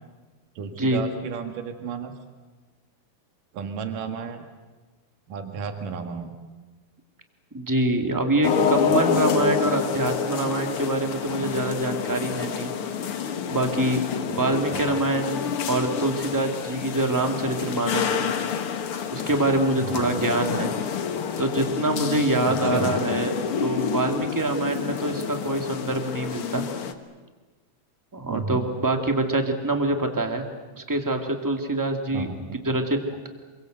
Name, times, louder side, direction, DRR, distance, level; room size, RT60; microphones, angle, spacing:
voice 1, 0.6-2.1 3.5-4.5 5.3-6.4 14.7-15.0 19.8-20.2 22.5-23.0 28.3-28.7 32.1-32.6, right 6 dB, 70° right, 6 dB, 3.4 m, -33 dB
voice 2, 7.5-12.7 13.5-14.0 14.3-18.2 19.1-20.7 21.4-23.3 23.6-26.6 28.1-30.4 30.7-33.0, right 2 dB, 5° right, 4 dB, 1.7 m, -25 dB
sound 1, 8.4-26.9, left 7 dB, 55° left, 1.7 m, -28 dB
27.5 x 23.0 x 8.0 m, 1.3 s
omnidirectional pair, 3.9 m